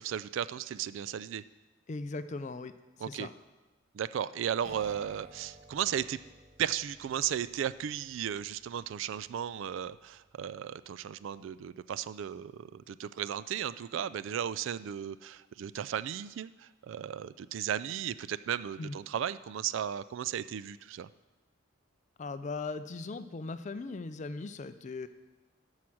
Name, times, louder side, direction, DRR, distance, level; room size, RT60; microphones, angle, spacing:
voice 1, 0.0-1.4 3.0-3.3 3.9-6.2 6.6-21.1, right 9 dB, 70° right, 16 dB, 0.3 m, -35 dB
voice 2, 1.9-2.7 3.1-3.3 18.8-19.0 22.2-25.1, left 3 dB, 35° left, 11 dB, 0.4 m, -38 dB
sound 1, 4.6-12.2, right 1 dB, 35° right, 2.5 m, -56 dB
12.5 x 4.8 x 5.9 m, 1.1 s
head